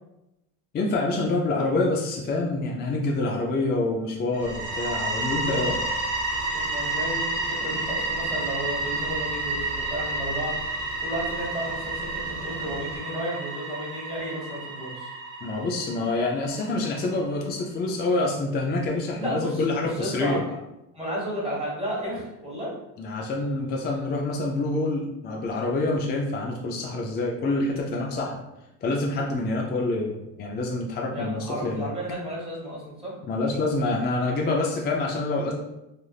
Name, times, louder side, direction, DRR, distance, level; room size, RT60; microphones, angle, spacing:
voice 1, 0.7-5.8 15.4-20.4 23.0-28.4 28.8-31.9 33.2-35.5, left 2 dB, 25° left, -1 dB, 0.4 m, -26 dB
sound 1, 4.3-17.0, right 2 dB, 75° right, 1.1 m, -30 dB
sound 2, 4.4-13.0, right 1 dB, 75° left, 0.7 m, -42 dB
voice 2, 6.5-10.5 11.0-15.1 16.5-16.6 19.2-20.5 20.9-22.7 31.1-33.1, equal, 15° right, -6 dB, 1.4 m, -33 dB
3.3 x 2.4 x 2.3 m, 0.90 s
supercardioid pair, 105°, 40 cm